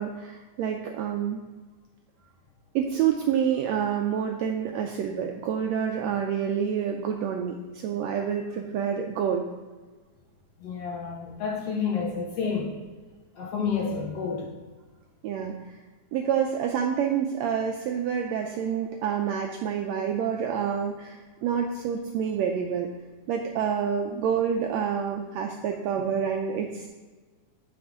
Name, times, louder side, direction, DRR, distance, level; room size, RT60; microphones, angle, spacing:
voice 1, 0.0-1.4 2.7-9.4 13.9-14.0 15.2-15.5 16.1-22.9 23.3-26.9, right 8 dB, 85° right, 3 dB, 1.5 m, -28 dB
voice 2, 10.6-12.8 13.3-14.5, left 6 dB, 70° left, -1 dB, 1.5 m, -30 dB
8.6 x 5.8 x 3.6 m, 1.3 s
omnidirectional pair, 3.6 m